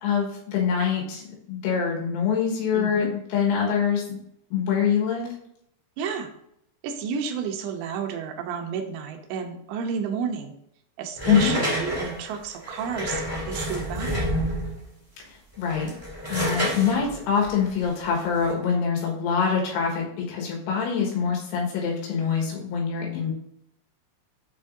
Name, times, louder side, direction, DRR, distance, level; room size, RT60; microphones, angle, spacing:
voice 1, 0.0-4.2 4.5-5.3 11.3-11.5 15.6-15.9 16.3-23.3, left 6 dB, 90° left, -2 dB, 4.4 m, -24 dB
voice 2, 2.7-3.1 6.0-6.3 6.8-10.5 11.0-14.2, right 6 dB, 80° right, 4 dB, 2.6 m, -31 dB
sound 1, 11.1-14.8 15.5-18.5, equal, 15° right, 0.8 m, -29 dB
8.3 x 6.0 x 2.7 m, 0.74 s
omnidirectional pair, 6.0 m